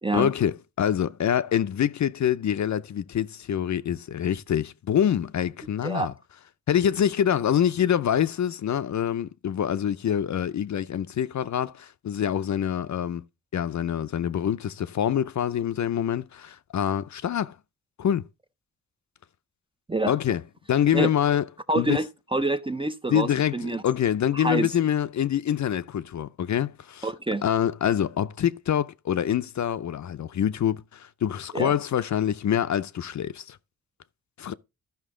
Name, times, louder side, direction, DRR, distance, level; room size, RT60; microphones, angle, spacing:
voice 1, 0.1-6.1 6.7-13.2 13.5-17.6 18.0-18.3 20.1-20.4 20.7-21.4 21.8-22.0 23.1-27.1 27.4-33.6 34.4-34.5, left 9 dB, 55° left, 0.5 m, -25 dB
voice 2, 21.7-22.1 22.3-23.3 23.5-23.8 24.3-24.7 27.0-27.4 31.5-31.7, right 2 dB, 15° right, 0.4 m, -26 dB
13.0 x 5.8 x 3.7 m
wide cardioid pair, 145°, 35 cm